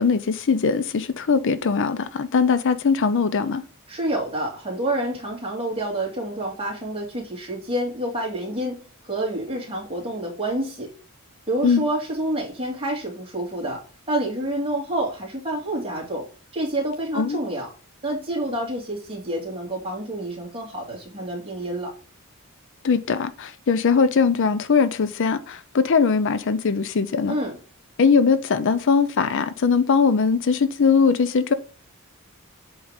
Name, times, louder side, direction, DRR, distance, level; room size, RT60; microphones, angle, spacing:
voice 1, 0.0-3.6 11.6-11.8 17.1-17.4 22.8-27.4 28.0-31.5, left 5 dB, 55° left, 0.5 m, -20 dB
voice 2, 3.9-10.9 11.5-13.8 14.1-16.2 16.5-17.7 18.0-21.9 27.3-27.5, right 1 dB, 25° right, 2.6 m, -28 dB
7.9 x 4.0 x 5.0 m
head